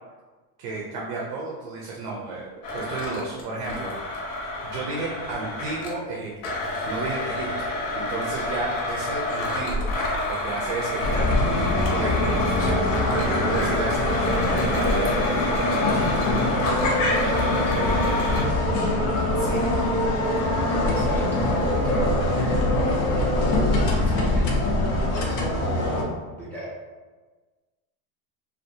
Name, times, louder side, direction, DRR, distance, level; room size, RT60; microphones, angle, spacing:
voice 1, 0.6-4.3 4.6-6.3 6.9-7.7 7.9-9.9 10.3-12.8 13.0-16.1 17.2-17.3 19.4-19.7 24.2-24.5, right 3 dB, 55° right, -3 dB, 0.6 m, -33 dB
Domestic sounds home sounds, 2.6-6.0 6.4-18.4, left 2 dB, 90° left, 0.9 m, -29 dB
sound 1, 11.0-26.0, left 1 dB, 60° left, 0.6 m, -23 dB
voice 2, 17.0-17.9 20.4-22.0 23.9-24.6 25.1-26.7, equal, 5° left, -11 dB, 0.4 m, -36 dB
2.7 x 2.4 x 2.6 m, 1.3 s
supercardioid pair, 165°, 47 cm